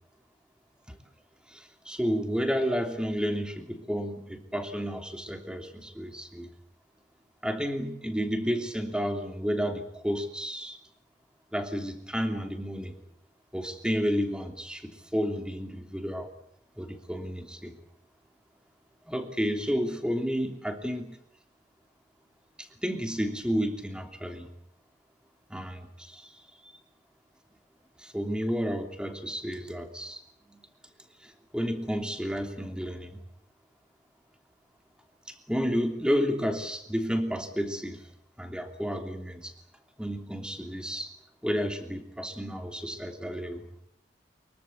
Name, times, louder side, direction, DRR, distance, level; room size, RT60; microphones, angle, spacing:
voice 1, 1.5-6.5 7.4-10.8 11.5-13.0 13.5-16.3 16.8-17.7 19.1-21.2 22.6-24.5 25.5-26.3 26.6-26.7 28.0-30.2 30.5-30.6 31.2-33.2 35.3-38.0 38.4-39.5 40.0-41.1 41.4-43.6, equal, 5° right, 5 dB, 3.0 m, -31 dB
24.5 x 23.0 x 8.3 m, 0.70 s
head